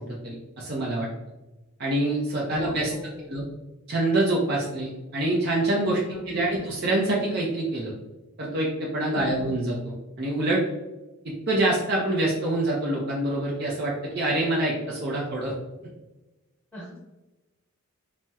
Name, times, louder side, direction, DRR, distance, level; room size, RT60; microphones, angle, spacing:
voice 1, 0.1-1.1 1.8-2.9 3.3-3.4 3.9-7.9 8.4-10.6 11.5-15.5, right 1 dB, 50° right, -4 dB, 0.6 m, -26 dB
voice 2, 2.5-3.5 6.1-6.6 9.2-9.6 16.7-17.0, equal, 5° left, -6 dB, 1.2 m, -41 dB
4.1 x 2.1 x 2.3 m, 1.1 s
head